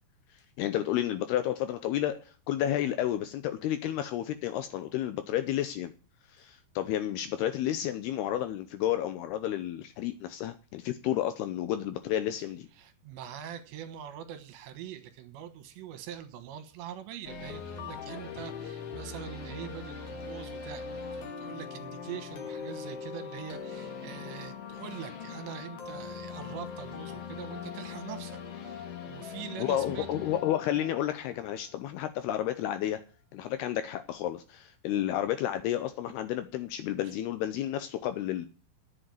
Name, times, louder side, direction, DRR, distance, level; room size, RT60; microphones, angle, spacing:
voice 1, 0.6-5.9 6.3-12.7 29.6-33.0 33.3-38.5, left 12 dB, 80° left, 2.4 m, -31 dB
voice 2, 12.8-30.3, right 10 dB, 75° right, 3.5 m, -43 dB
sound 1, 17.2-32.1, left 6 dB, 55° left, 2.6 m, -41 dB
10.0 x 7.9 x 9.2 m
omnidirectional pair, 5.2 m